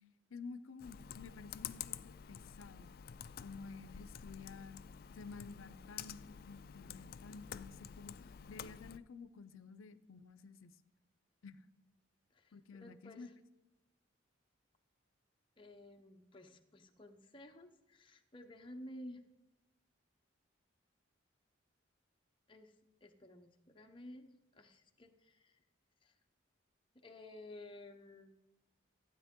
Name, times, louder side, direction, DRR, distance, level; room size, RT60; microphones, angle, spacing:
voice 1, 0.3-2.9 3.4-4.8 5.1-8.1 8.5-10.7 11.4-11.7 12.5-13.3, left 4 dB, 90° left, 14 dB, 0.6 m, -52 dB
Computer keyboard, 0.8-9.0, left 8 dB, 45° left, 0.3 m, -49 dB
voice 2, 12.3-13.3 15.6-19.2 22.5-25.6 26.0-26.2 26.9-28.3, left 1 dB, 25° left, 3 dB, 0.8 m, -54 dB
15.0 x 9.1 x 3.7 m, 0.99 s
head